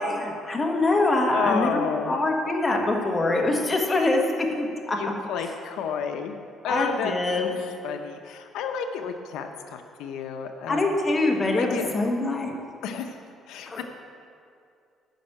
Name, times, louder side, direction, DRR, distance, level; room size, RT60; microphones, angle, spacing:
voice 1, 0.0-4.2 4.5-5.0 6.6-7.5 10.7-12.5 13.7-13.8, left 2 dB, 25° left, 1 dB, 1.5 m, -24 dB
voice 2, 1.3-2.2 5.0-6.4 6.6-10.9 11.6-11.9 12.8-13.2 13.5-13.8, left 6 dB, 85° left, 5 dB, 0.7 m, -31 dB
10.0 x 6.2 x 8.9 m, 2.4 s
cardioid pair, 130°, 0 cm